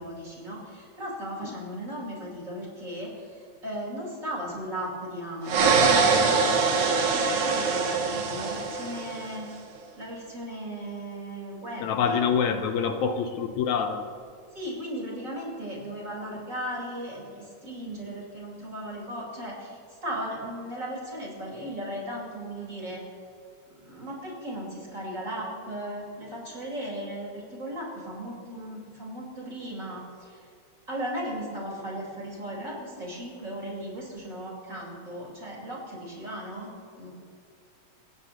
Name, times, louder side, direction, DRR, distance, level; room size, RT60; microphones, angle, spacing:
voice 1, 0.0-6.7 7.0-9.5 10.0-12.2 14.5-23.0 23.8-30.4 30.9-37.1, equal, 25° right, -4 dB, 5.4 m, -36 dB
sound 1, 5.5-9.4, right 4 dB, 80° right, 3.0 m, -23 dB
voice 2, 11.8-14.1, left 6 dB, 75° left, 6 dB, 2.3 m, -26 dB
29.5 x 15.5 x 3.1 m, 2.3 s
omnidirectional pair, 3.3 m